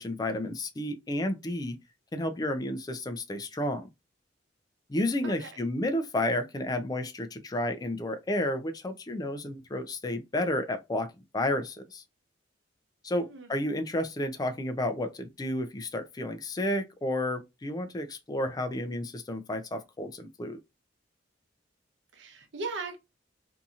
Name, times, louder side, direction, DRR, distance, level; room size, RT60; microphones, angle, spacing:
voice 1, 0.0-1.8 2.1-3.9 4.9-12.0 13.0-20.6, left 1 dB, 20° left, 0.4 m, -31 dB
voice 2, 13.2-13.5 22.1-23.0, right 3 dB, 75° right, 0.8 m, -38 dB
2.7 x 2.7 x 2.4 m
head